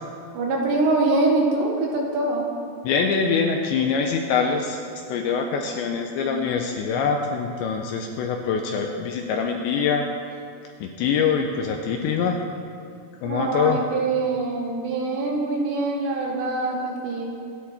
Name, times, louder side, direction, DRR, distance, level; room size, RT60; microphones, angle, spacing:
voice 1, 0.3-2.4 13.3-17.3, right 2 dB, 65° right, -1 dB, 3.5 m, -24 dB
voice 2, 2.8-4.8 5.1-10.1 10.8-12.4 13.2-13.8, left 6 dB, 80° left, 3 dB, 2.7 m, -24 dB
26.0 x 10.5 x 4.3 m, 2.5 s
omnidirectional pair, 5.9 m